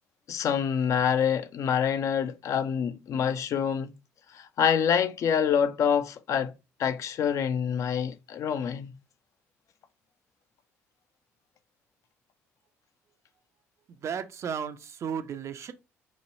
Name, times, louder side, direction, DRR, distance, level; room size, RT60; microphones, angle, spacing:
voice 1, 0.3-3.9 4.3-6.5 6.8-8.9, left 8 dB, 45° left, 0.4 m, -26 dB
voice 2, 13.9-15.7, right 7 dB, 40° right, 0.4 m, -34 dB
3.1 x 2.2 x 4.1 m
figure-of-eight pair, 50°, 7 cm